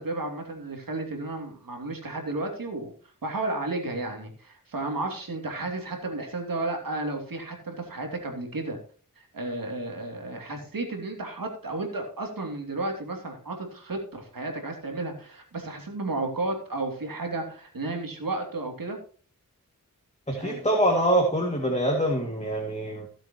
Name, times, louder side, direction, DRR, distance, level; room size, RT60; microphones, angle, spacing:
voice 1, 0.0-2.9 3.2-8.8 9.2-19.0 20.3-20.6, right 2 dB, 85° right, 3 dB, 2.8 m, -33 dB
voice 2, 20.3-23.1, right 1 dB, 20° left, 0 dB, 2.4 m, -24 dB
16.5 x 7.5 x 3.0 m, 0.42 s
wide cardioid pair, 55°, 33 cm